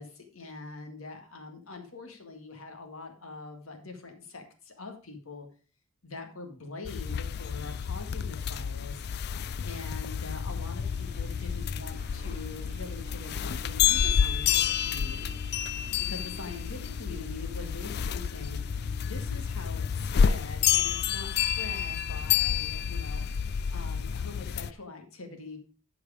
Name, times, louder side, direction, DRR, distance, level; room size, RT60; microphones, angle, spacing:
voice 1, 0.0-5.5 6.0-9.1 9.6-15.4 16.0-18.6 19.0-23.4 23.7-25.6, left 3 dB, 75° left, 5 dB, 2.1 m, -43 dB
sound 1, 6.8-24.7, left 8 dB, 50° left, 0.4 m, -29 dB
sound 2, 9.9-22.0 22.5-22.6, right 2 dB, 45° right, 0.6 m, -52 dB
13.5 x 5.0 x 4.9 m, 0.37 s
head